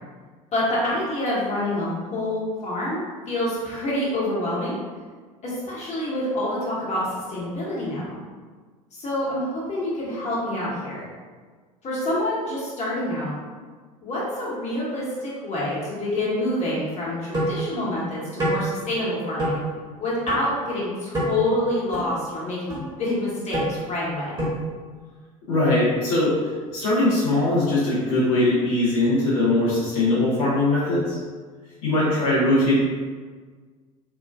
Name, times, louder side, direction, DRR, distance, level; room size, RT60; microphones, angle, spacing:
voice 1, 0.5-4.8 5.4-8.2 8.9-11.0 11.8-13.3 14.0-19.6 20.0-24.3, left 1 dB, 35° left, -6 dB, 1.3 m, -27 dB
sound 1, 17.3-17.6 18.4-18.6 19.4-19.5 20.3-20.4 21.1-21.3 21.9-22.0 22.7-22.8 23.5-23.7 24.4-24.6, right 1 dB, 25° right, 1.3 m, -25 dB
voice 2, 25.5-31.2 31.8-32.7, left 2 dB, 70° left, -9 dB, 1.2 m, -21 dB
2.9 x 2.4 x 2.4 m, 1.5 s
hypercardioid pair, 75°, 19 cm